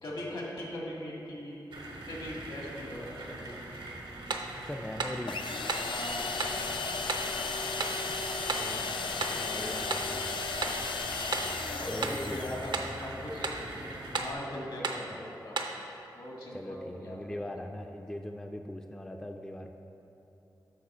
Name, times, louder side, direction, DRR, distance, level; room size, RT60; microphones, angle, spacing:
voice 1, 0.0-3.6 5.8-6.7 7.9-8.0 8.7-9.7 11.7-15.6 16.1-17.6, left 1 dB, 70° left, -3 dB, 1.6 m, -41 dB
sound 1, 1.7-14.3, right 2 dB, 85° right, 0.9 m, -43 dB
sound 2, 4.3-4.5 5.0-5.2 5.7-5.9 6.4-6.6 7.1-7.3 7.8-8.0 8.5-8.7 9.2-9.4 9.9-10.1 10.6-10.8 11.3-11.6 12.0-12.2 12.7-13.0 13.4-13.6 14.1-14.4 14.8-15.1 15.6-15.8, right 4 dB, 65° right, 0.5 m, -34 dB
voice 2, 4.6-5.4 8.1-10.3 11.9-12.4 12.8-12.9 15.1-15.2 16.5-19.7, left 1 dB, 10° left, 4 dB, 0.3 m, -41 dB
sound 3, 5.3-12.9, left 4 dB, 85° left, 0.4 m, -35 dB
7.4 x 3.7 x 6.0 m, 2.9 s
cardioid pair, 65°, 8 cm